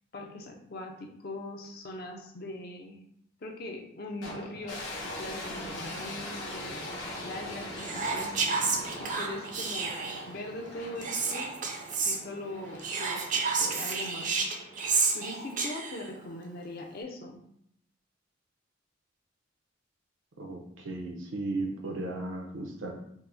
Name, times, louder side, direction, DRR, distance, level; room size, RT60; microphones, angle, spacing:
voice 1, 0.1-3.0 3.4-8.5 9.0-11.6 12.1-14.5 15.1-17.4, left 1 dB, 50° left, 2 dB, 0.5 m, -41 dB
sound 1, 4.2-15.4, left 1 dB, 70° left, 1.0 m, -42 dB
Whispering, 7.8-10.3 11.0-12.2 12.8-16.1, right 4 dB, 40° right, 0.5 m, -30 dB
voice 2, 20.4-22.9, right 2 dB, 80° right, 2 dB, 0.7 m, -35 dB
4.6 x 2.1 x 2.6 m, 0.70 s
head